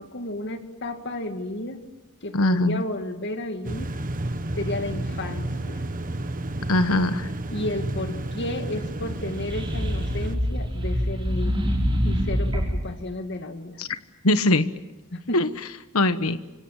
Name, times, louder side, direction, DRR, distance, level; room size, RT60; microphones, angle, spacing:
voice 1, 0.0-1.8 2.2-3.9 4.6-5.8 7.5-11.7 12.0-13.8 15.1-15.4, left 1 dB, 55° left, 7 dB, 2.2 m, -32 dB
voice 2, 2.3-2.8 6.7-7.3 13.8-13.9 14.2-14.7 15.3-15.5 15.9-16.4, left 2 dB, 80° left, 11 dB, 1.3 m, -21 dB
sound 1, 3.6-10.4, right 1 dB, 40° right, 1.2 m, -31 dB
sound 2, 9.2-12.9, equal, 25° right, 6.0 m, -25 dB
27.5 x 25.0 x 7.4 m, 1.0 s
head